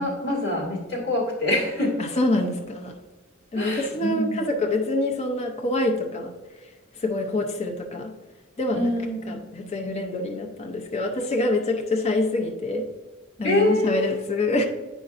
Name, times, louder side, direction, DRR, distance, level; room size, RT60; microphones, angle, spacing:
voice 1, 0.0-2.0 3.6-4.4 8.7-9.4 13.4-14.2, left 1 dB, 55° left, -3 dB, 1.9 m, -25 dB
voice 2, 2.0-3.0 3.5-6.3 7.0-8.1 8.6-9.0 9.3-12.9 13.4-14.7, left 2 dB, 30° left, 2 dB, 0.5 m, -26 dB
8.5 x 5.1 x 2.5 m, 1.3 s
head